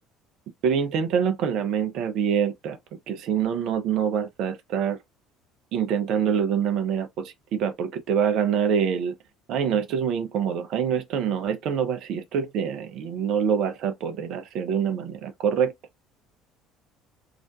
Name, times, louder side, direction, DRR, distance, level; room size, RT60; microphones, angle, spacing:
voice 1, 0.6-2.8 3.1-5.0 5.7-9.1 9.5-15.7, right 7 dB, 55° right, 0.4 m, -25 dB
2.4 x 2.1 x 2.5 m
figure-of-eight pair, 60°, 0 cm